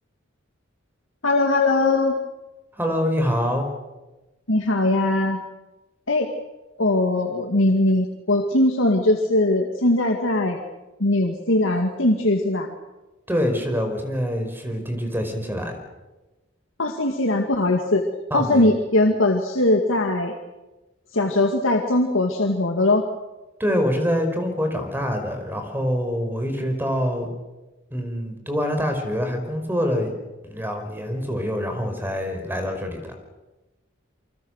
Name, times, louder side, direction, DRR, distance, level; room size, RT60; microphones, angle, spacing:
voice 1, 1.2-2.2 4.5-5.4 6.1-6.3 6.8-10.6 11.0-12.7 16.8-18.0 18.3-20.4 21.1-23.1, left 2 dB, 80° left, 2 dB, 2.2 m, -20 dB
voice 2, 2.8-3.7 13.3-15.7 18.3-18.7 23.6-27.3 27.9-30.1 30.5-33.0, equal, 10° right, 5 dB, 5.0 m, -25 dB
29.0 x 24.5 x 6.6 m, 1.1 s
head